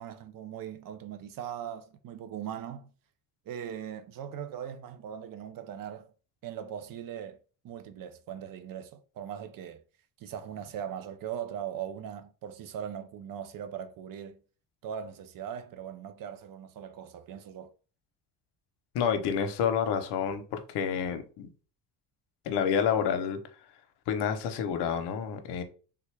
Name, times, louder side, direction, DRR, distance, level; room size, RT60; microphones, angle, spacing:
voice 1, 0.0-2.9 3.5-6.1 6.4-7.4 7.6-9.8 10.2-14.4 14.8-17.7, right 9 dB, 55° right, 0.5 m, -40 dB
voice 2, 18.9-21.5 22.4-23.4 24.1-25.6, left 7 dB, 80° left, 0.7 m, -29 dB
3.4 x 2.3 x 3.2 m
cardioid pair, 95°, 40 cm